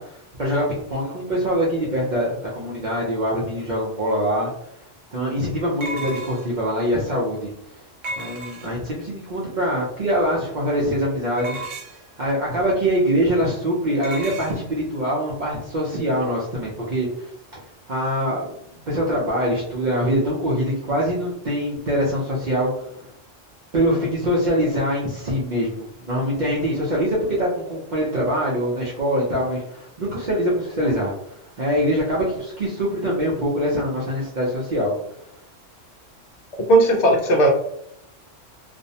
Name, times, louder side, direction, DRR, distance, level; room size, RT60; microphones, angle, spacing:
voice 1, 0.0-4.5 5.1-7.5 8.2-17.6 17.9-23.1 23.7-35.0, equal, 55° right, -5 dB, 0.5 m, -24 dB
sound 1, 5.8-6.6 8.0-8.9 11.4-12.1 14.0-14.6, right 2 dB, 75° right, 1.0 m, -33 dB
voice 2, 36.7-37.5, right 2 dB, 70° left, 2 dB, 0.8 m, -16 dB
2.5 x 2.0 x 2.7 m, 0.73 s
omnidirectional pair, 1.3 m